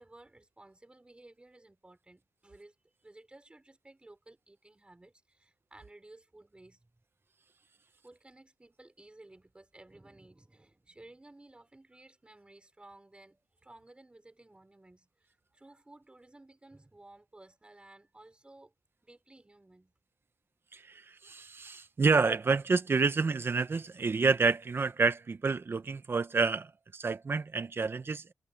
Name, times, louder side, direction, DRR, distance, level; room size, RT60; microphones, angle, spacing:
voice 1, 0.0-2.7 3.0-6.9 8.0-18.7 19.0-19.9, right 2 dB, 15° right, 4.5 m, -56 dB
voice 2, 20.7-28.3, right 4 dB, 35° right, 1.0 m, -29 dB
wide cardioid pair, 125°, 6 cm